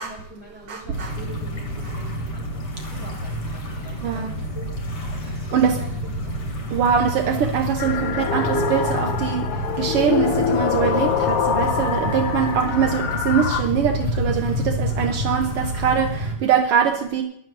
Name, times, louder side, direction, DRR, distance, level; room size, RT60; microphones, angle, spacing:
voice 1, 0.0-2.5 2.9-4.2 4.5-4.7 5.5-6.1 12.5-12.6, right 1 dB, 5° right, -1 dB, 7.1 m, -43 dB
voice 2, 0.7-1.1 4.0-4.3 5.5-5.8 6.7-17.2, right 7 dB, 75° right, 5 dB, 1.3 m, -23 dB
sound 1, 0.9-16.4, equal, 40° left, 3.7 m, -28 dB
sound 2, 7.8-13.6, left 7 dB, 80° left, 2.5 m, -24 dB
22.5 x 15.5 x 2.7 m, 0.70 s
omnidirectional pair, 3.8 m